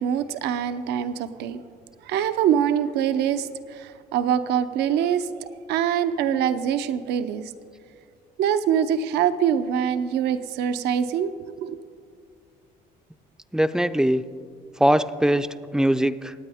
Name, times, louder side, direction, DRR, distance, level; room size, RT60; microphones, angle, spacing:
voice 1, 0.0-1.6 2.0-5.3 5.7-7.5 8.4-11.3 11.6-11.8, right 9 dB, 80° right, 11 dB, 0.6 m, -24 dB
voice 2, 13.5-14.2 14.8-15.5 15.7-16.3, right 1 dB, 5° right, 12 dB, 0.4 m, -21 dB
25.5 x 9.1 x 3.5 m, 2.3 s
cardioid pair, 110°, 17 cm